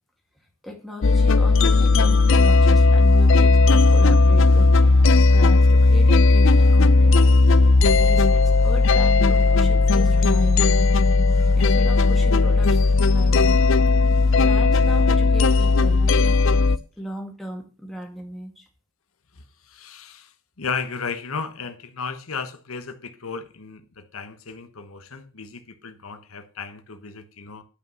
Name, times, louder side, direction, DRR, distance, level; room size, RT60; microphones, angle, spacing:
voice 1, 0.6-7.2 8.0-10.8 11.5-13.7 14.4-18.7, equal, ahead, 2.1 m, -37 dB
sound 1, 1.0-16.8, left 3 dB, 65° left, 0.5 m, -16 dB
voice 2, 19.7-20.3 20.6-27.6, left 5 dB, 85° left, 1.1 m, -34 dB
10.0 x 5.7 x 6.9 m
head